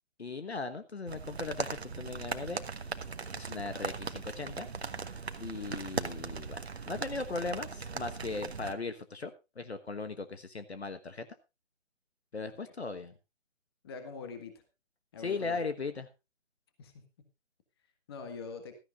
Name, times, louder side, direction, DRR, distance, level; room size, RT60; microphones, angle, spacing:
voice 1, 0.2-2.6 3.3-4.7 5.4-11.3 12.3-13.1 15.2-16.1, left 4 dB, 55° left, 10 dB, 1.4 m, -38 dB
sound 1, 1.1-8.7, right 5 dB, 55° right, 1.3 m, -39 dB
voice 2, 13.8-14.6 15.1-15.6 16.8-17.0 18.1-18.7, left 5 dB, 20° left, 8 dB, 1.7 m, -43 dB
16.0 x 13.5 x 2.5 m, 0.26 s
figure-of-eight pair, 150°, 38 cm